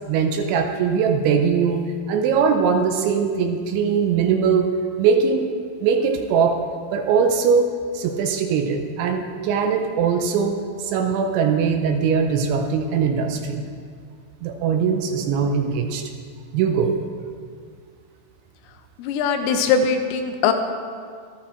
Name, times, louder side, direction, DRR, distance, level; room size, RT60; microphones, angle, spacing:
voice 1, 0.1-1.8 2.1-4.7 5.0-5.5 5.8-6.6 6.9-13.6 14.4-16.1 16.5-16.9, right 6 dB, 80° right, 4 dB, 2.9 m, -21 dB
voice 2, 19.0-20.5, left 6 dB, 85° left, 6 dB, 3.4 m, -21 dB
13.0 x 11.5 x 4.4 m, 2.1 s
omnidirectional pair, 5.7 m